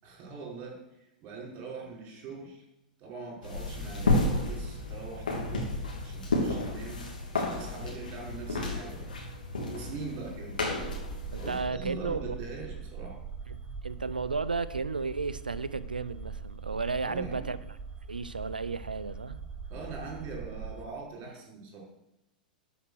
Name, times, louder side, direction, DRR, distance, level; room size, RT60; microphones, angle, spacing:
voice 1, 0.0-2.6 3.0-5.7 6.0-9.1 9.6-10.6 11.4-13.2 17.0-17.5 19.7-21.8, right 4 dB, 35° right, -2 dB, 5.3 m, -42 dB
sound 1, 3.4-11.6, left 2 dB, 75° left, 3.0 m, -32 dB
sound 2, 10.8-20.8, right 6 dB, 20° right, 1.3 m, -42 dB
voice 2, 11.3-12.4 13.5-17.6 18.1-19.4, right 4 dB, 80° right, 15 dB, 0.6 m, -33 dB
12.5 x 6.0 x 6.5 m, 0.89 s
figure-of-eight pair, 100°, 5 cm